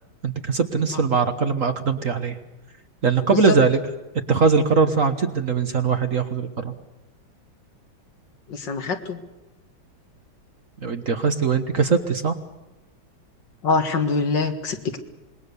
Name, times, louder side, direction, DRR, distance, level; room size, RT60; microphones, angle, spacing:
voice 1, 0.2-2.4 3.0-3.8 4.3-6.7 10.8-12.3, right 5 dB, 45° right, 8 dB, 1.5 m, -21 dB
voice 2, 8.5-9.2 13.6-15.0, left 4 dB, 60° left, 7 dB, 2.4 m, -24 dB
26.5 x 21.5 x 7.0 m, 1.0 s
omnidirectional pair, 2.2 m